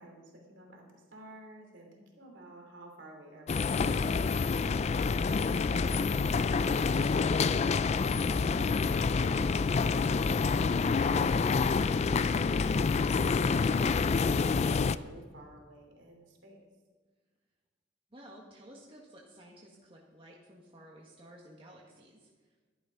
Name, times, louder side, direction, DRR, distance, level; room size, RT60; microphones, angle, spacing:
voice 1, 0.0-16.6, right 1 dB, 80° right, 1 dB, 3.0 m, -53 dB
sound 1, 3.5-15.0, left 4 dB, 35° left, 0.3 m, -27 dB
voice 2, 18.1-22.5, right 1 dB, 30° right, -3 dB, 1.6 m, -54 dB
12.5 x 11.0 x 5.1 m, 1.4 s
head